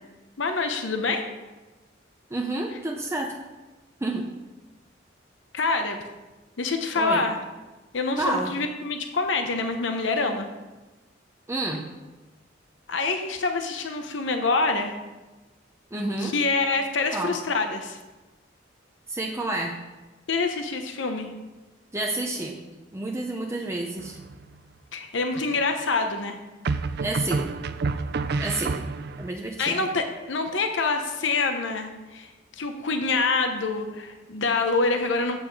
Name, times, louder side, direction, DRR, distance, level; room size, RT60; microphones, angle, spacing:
voice 1, 0.4-1.2 5.5-6.0 6.6-7.4 7.9-10.5 12.9-14.9 16.2-18.0 20.3-21.3 24.9-26.4 29.6-35.4, left 3 dB, 70° left, 6 dB, 0.8 m, -26 dB
voice 2, 2.3-3.4 4.0-4.3 6.9-7.2 8.2-8.5 11.5-11.8 15.9-16.4 17.1-17.4 19.1-19.8 21.9-22.6 22.9-24.2 27.0-27.5 28.4-28.8 29.2-29.8, right 2 dB, 15° right, 1 dB, 0.6 m, -29 dB
sound 1, 24.0-24.6 26.6-29.3, right 4 dB, 55° right, 0.4 m, -29 dB
8.0 x 7.9 x 4.7 m, 1.2 s
head